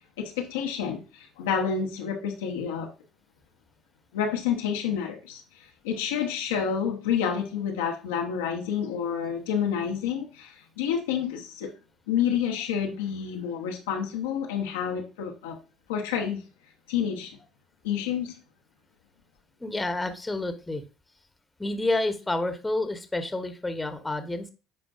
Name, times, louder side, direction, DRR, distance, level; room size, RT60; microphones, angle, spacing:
voice 1, 0.2-2.9 4.1-11.7 12.1-15.6 15.9-16.4 16.9-17.3 17.8-18.3, left 8 dB, 75° left, 1.0 m, -29 dB
voice 2, 19.6-20.8 21.6-24.5, left 2 dB, 15° left, 1.2 m, -29 dB
10.5 x 4.4 x 2.5 m
figure-of-eight pair, 55°, 0 cm